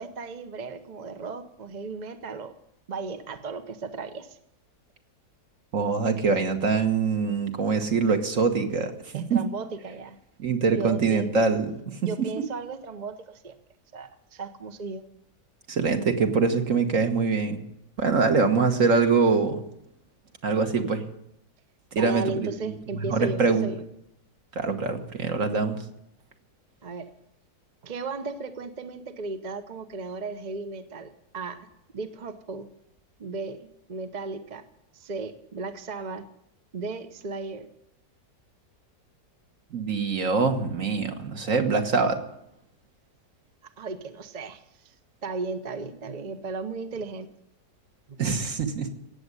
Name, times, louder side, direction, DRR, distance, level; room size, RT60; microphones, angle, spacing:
voice 1, 0.0-2.5 2.9-4.4 9.1-10.2 10.7-11.3 12.0-13.6 13.9-15.0 21.9-23.8 26.8-27.1 27.8-31.6 31.9-32.7 33.2-34.6 34.9-36.3 36.7-37.7 43.8-44.9 45.2-47.3, right 3 dB, 35° right, 8 dB, 0.8 m, -35 dB
voice 2, 5.7-9.4 10.4-12.3 15.7-17.6 18.0-19.6 20.4-21.0 21.9-22.7 23.0-23.7 24.6-25.8 39.7-42.2 48.2-48.9, right 4 dB, 50° right, 6 dB, 1.7 m, -24 dB
17.0 x 7.9 x 9.7 m, 0.79 s
omnidirectional pair, 1.8 m